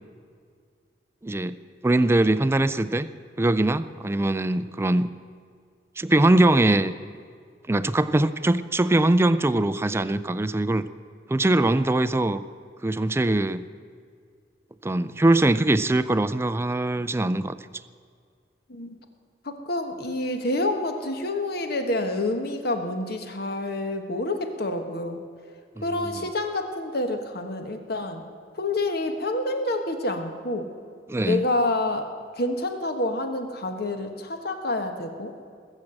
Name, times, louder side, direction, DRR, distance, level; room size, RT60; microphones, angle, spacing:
voice 1, 1.2-1.6 1.8-3.1 3.4-5.1 6.0-6.9 7.7-10.9 11.3-12.4 12.8-13.6 14.8-17.6 25.8-26.2 31.1-31.4, right 2 dB, 15° right, 13 dB, 0.4 m, -22 dB
voice 2, 19.4-25.2 25.8-28.3 28.5-30.7 31.3-35.3, left 2 dB, 60° left, 6 dB, 1.4 m, -28 dB
20.5 x 7.4 x 7.7 m, 2.1 s
head